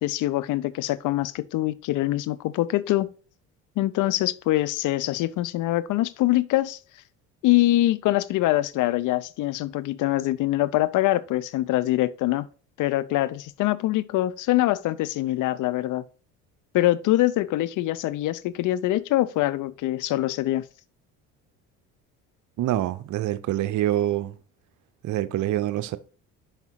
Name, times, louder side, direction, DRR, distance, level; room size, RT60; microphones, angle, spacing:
voice 1, 0.0-3.1 3.8-6.8 7.4-12.5 12.8-16.0 16.7-20.6, left 16 dB, 65° left, 0.6 m, -24 dB
voice 2, 22.6-24.4 25.0-26.0, right 13 dB, 60° right, 0.7 m, -25 dB
5.7 x 5.3 x 4.6 m
supercardioid pair, 75°, 34 cm